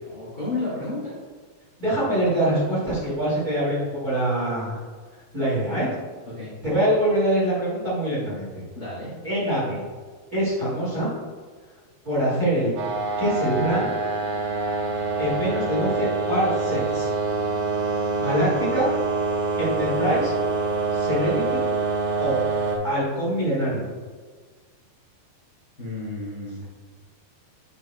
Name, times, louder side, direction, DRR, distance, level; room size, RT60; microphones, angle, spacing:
voice 1, 0.0-1.2 6.3-6.5 8.7-9.1 25.8-26.6, left 2 dB, 55° left, -8 dB, 1.0 m, -32 dB
voice 2, 1.8-4.8 5.3-5.9 6.6-8.6 9.2-9.8 10.3-11.1 12.0-12.7 13.2-13.9 15.2-17.1 18.2-18.9 19.5-20.4 20.9-21.6 22.2-22.4 22.8-23.9, right 1 dB, 35° right, -8 dB, 1.5 m, -24 dB
sound 1, 12.8-22.8, right 3 dB, 75° right, 1.8 m, -25 dB
9.8 x 6.3 x 2.2 m, 1.5 s
omnidirectional pair, 5.1 m